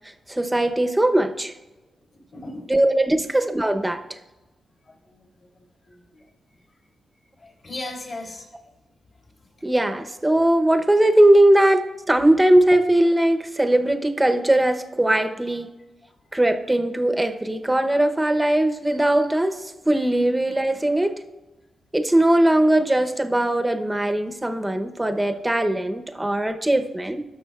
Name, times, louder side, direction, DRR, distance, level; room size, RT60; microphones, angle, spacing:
voice 1, 0.3-1.5 2.7-4.0 9.6-11.8 12.1-15.7 16.3-19.6 19.9-21.1 21.9-27.2, right 1 dB, 10° right, 6 dB, 0.8 m, -20 dB
voice 2, 2.1-2.7 3.0-3.3 4.9-5.2 5.8-6.0 7.4-8.4, left 2 dB, 50° left, -2 dB, 3.3 m, -37 dB
17.5 x 6.3 x 2.4 m, 1.1 s
cardioid pair, 75°, 0 cm